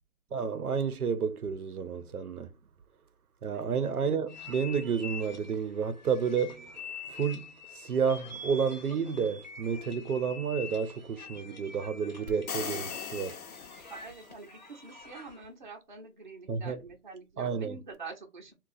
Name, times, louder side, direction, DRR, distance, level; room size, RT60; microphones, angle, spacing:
voice 1, 0.3-2.5 3.4-6.7 7.1-7.5 7.8-13.4 16.5-16.8 17.4-17.8, right 6 dB, 80° right, 0.7 m, -30 dB
sound 1, 4.3-15.5, left 4 dB, 30° left, 0.7 m, -46 dB
sound 2, 12.3-14.3, left 6 dB, 70° left, 0.7 m, -39 dB
voice 2, 13.9-18.5, right 4 dB, 35° right, 0.6 m, -46 dB
2.9 x 2.3 x 3.8 m
hypercardioid pair, 170°, 45 cm